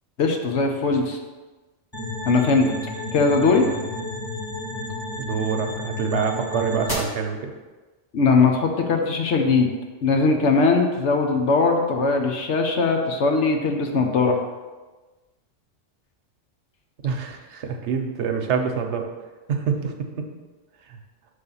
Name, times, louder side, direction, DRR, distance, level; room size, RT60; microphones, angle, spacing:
voice 1, 0.2-1.2 2.2-2.7 3.1-3.7 8.1-9.7 10.0-14.4, left 4 dB, 75° left, 3 dB, 1.1 m, -20 dB
sound 1, 1.9-6.9, left 2 dB, 20° left, 1.7 m, -32 dB
voice 2, 5.2-7.5 17.0-19.0 19.5-19.9, right 6 dB, 75° right, 4 dB, 1.0 m, -26 dB
6.3 x 3.5 x 5.5 m, 1.2 s
omnidirectional pair, 1.2 m